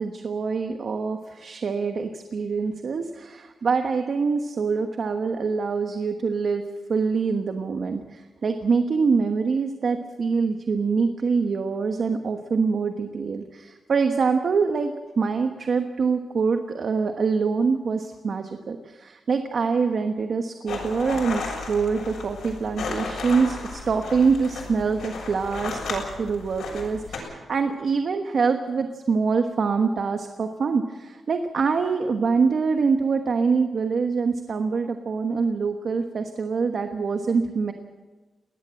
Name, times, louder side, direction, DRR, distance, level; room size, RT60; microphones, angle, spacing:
voice 1, 0.0-6.6 6.9-37.7, right 5 dB, 50° right, 6 dB, 1.2 m, -25 dB
sound 1, 20.7-27.2, left 4 dB, 80° left, 7.1 m, -34 dB
22.0 x 18.5 x 7.7 m, 1.3 s
wide cardioid pair, 150°, 0 cm